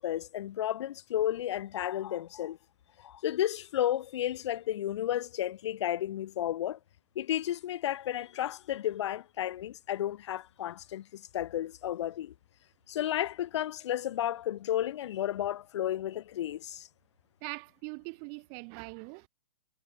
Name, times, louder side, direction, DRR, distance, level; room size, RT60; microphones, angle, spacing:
voice 1, 0.0-2.6 3.0-6.8 7.2-12.3 12.9-16.9, left 12 dB, 55° left, 0.7 m, -32 dB
voice 2, 17.4-19.3, right 40 dB or more, 30° right, 2.0 m, -42 dB
hypercardioid pair, 150°, 18 cm